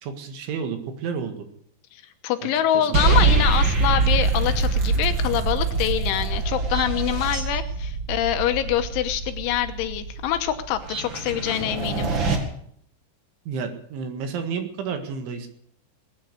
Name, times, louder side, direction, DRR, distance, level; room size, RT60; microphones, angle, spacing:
voice 1, 0.0-1.4 2.7-3.0 13.5-15.5, right 6 dB, 75° right, 6 dB, 4.1 m, -31 dB
voice 2, 1.9-12.1, left 11 dB, 80° left, 8 dB, 3.3 m, -25 dB
sound 1, 2.9-12.4, right 4 dB, 55° right, 1.3 m, -24 dB
20.0 x 9.8 x 6.6 m, 0.66 s
omnidirectional pair, 5.7 m